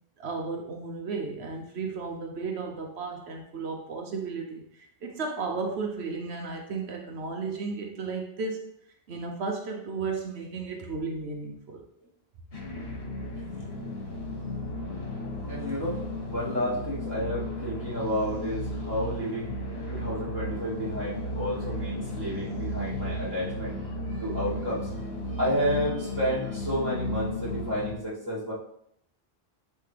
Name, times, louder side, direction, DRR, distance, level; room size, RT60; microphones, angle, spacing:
voice 1, 0.2-8.6 9.1-11.8, right 4 dB, 85° right, 2 dB, 1.1 m, -34 dB
sound 1, 12.5-27.9, left 1 dB, 65° left, 1.5 m, -34 dB
voice 2, 15.5-19.6 19.9-28.5, equal, 20° right, -7 dB, 2.6 m, -31 dB
10.0 x 3.4 x 3.3 m, 0.71 s
omnidirectional pair, 1.1 m